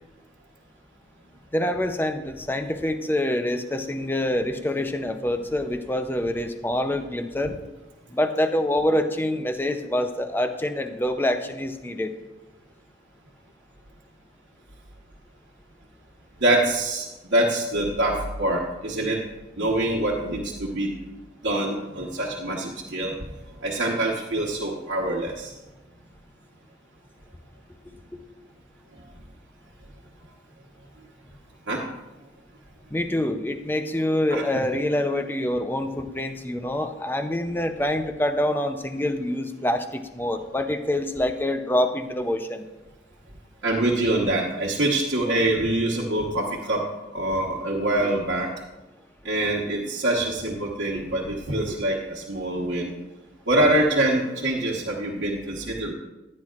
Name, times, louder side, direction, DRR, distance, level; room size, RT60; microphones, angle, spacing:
voice 1, 1.5-7.5 8.1-12.1 32.9-42.7, left 1 dB, 10° left, 7 dB, 0.6 m, -26 dB
voice 2, 16.4-19.2 19.6-20.9 21.4-23.2 23.6-25.5 31.7-31.9 34.3-34.4 43.6-46.9 47.1-48.5 49.2-52.9 53.5-55.9, right 1 dB, 90° right, -5 dB, 1.2 m, -25 dB
14.5 x 9.7 x 2.4 m, 1.1 s
head